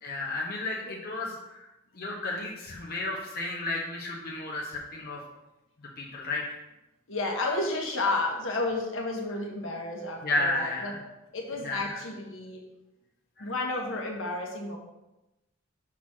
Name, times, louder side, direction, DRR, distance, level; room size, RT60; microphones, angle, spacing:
voice 1, 0.0-1.7 1.9-5.2 6.0-6.6 10.2-11.0 11.6-12.0 13.4-13.5, left 2 dB, 50° left, -2 dB, 1.0 m, -32 dB
voice 2, 7.1-10.9 11.3-12.6 13.4-14.8, left 2 dB, 75° left, 0 dB, 1.4 m, -31 dB
5.9 x 4.1 x 6.1 m, 0.97 s
head